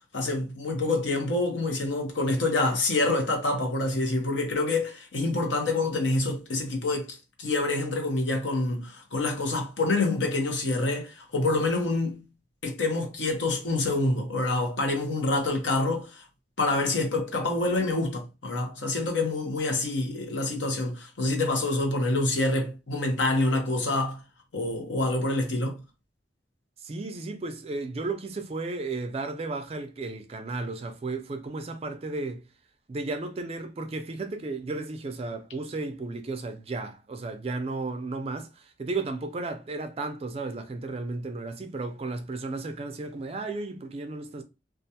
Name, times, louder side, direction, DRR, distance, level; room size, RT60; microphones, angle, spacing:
voice 1, 0.1-12.2 12.6-16.2 16.6-24.2 24.5-25.8, left 2 dB, 80° left, 0.8 m, -27 dB
voice 2, 26.8-32.4 32.9-44.4, right 3 dB, 35° right, 0.3 m, -34 dB
2.3 x 2.2 x 2.7 m
head